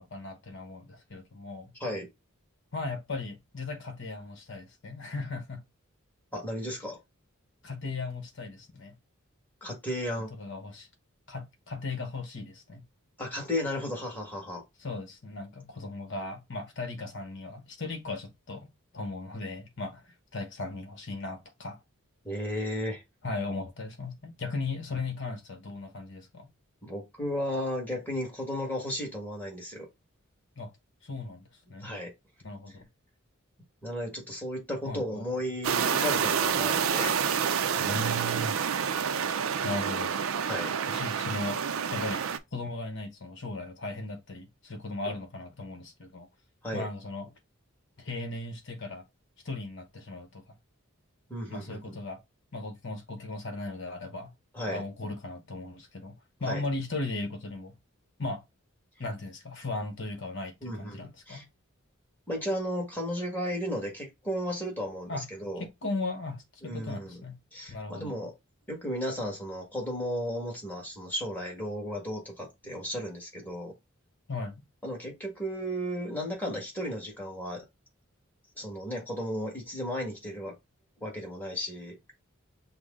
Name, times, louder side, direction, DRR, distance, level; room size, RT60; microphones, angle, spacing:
voice 1, 0.0-1.7 2.7-5.6 7.6-9.0 10.1-10.9 11.3-12.9 14.8-18.7 18.9-21.8 23.2-26.5 30.6-30.7 31.0-31.9 32.4-32.9 34.8-35.3 37.7-38.6 39.6-40.1 40.9-41.6 41.9-42.2 42.5-46.3 46.7-47.3 48.0-49.0 49.4-50.4 51.5-52.2 52.5-54.3 54.6-57.8 58.2-58.4 59.0-61.4 65.1-65.3 65.6-67.4 67.7-68.2 74.3-74.6, left 2 dB, 60° left, 1.0 m, -37 dB
voice 2, 6.3-7.0 9.6-10.3 13.2-14.6 22.2-23.0 26.8-29.9 31.8-32.1 33.8-37.1 40.4-40.7 46.6-46.9 51.3-51.9 54.5-54.8 56.5-56.6 60.6-61.4 62.3-65.6 66.6-67.2 67.5-68.3 68.7-73.7 74.8-77.6 78.6-80.6 81.0-82.0, equal, 10° left, 1.5 m, -34 dB
sound 1, 35.6-42.4, right 7 dB, 75° right, 0.5 m, -28 dB
6.1 x 2.1 x 3.6 m
head